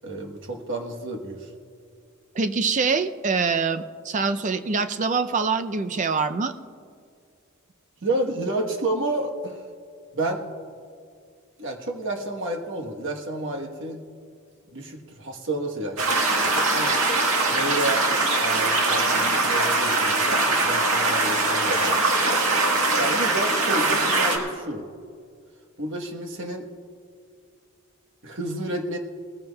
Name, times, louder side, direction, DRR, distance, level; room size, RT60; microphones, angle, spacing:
voice 1, 0.0-1.5 8.0-9.6 10.1-10.5 11.6-14.0 14.7-17.0 17.5-18.1 18.4-21.9 22.5-22.6 23.0-24.9 25.8-26.7 28.2-29.0, right 2 dB, 60° right, 2 dB, 1.2 m, -30 dB
voice 2, 2.4-6.5, right 4 dB, 35° right, 10 dB, 0.5 m, -24 dB
sound 1, 16.0-24.4, right 2 dB, 85° right, 1.6 m, -22 dB
20.0 x 15.0 x 2.3 m, 2.3 s
head